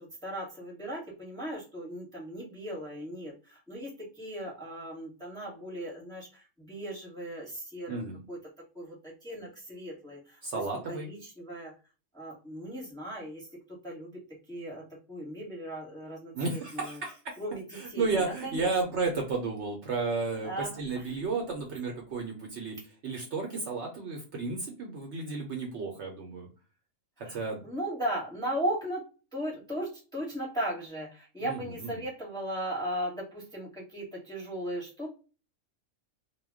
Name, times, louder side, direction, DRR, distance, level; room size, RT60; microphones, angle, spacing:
voice 1, 0.0-8.4 8.7-10.4 10.9-11.7 12.1-17.0 17.4-18.7 20.4-21.1 27.2-29.0 29.3-35.1, right 1 dB, 5° left, -3 dB, 0.8 m, -37 dB
voice 2, 7.9-8.2 10.4-11.1 16.3-17.4 17.7-22.8 23.0-26.5 27.2-27.6 31.4-31.9, right 3 dB, 65° right, 1 dB, 0.8 m, -33 dB
2.2 x 2.2 x 3.4 m, 0.35 s
omnidirectional pair, 1.4 m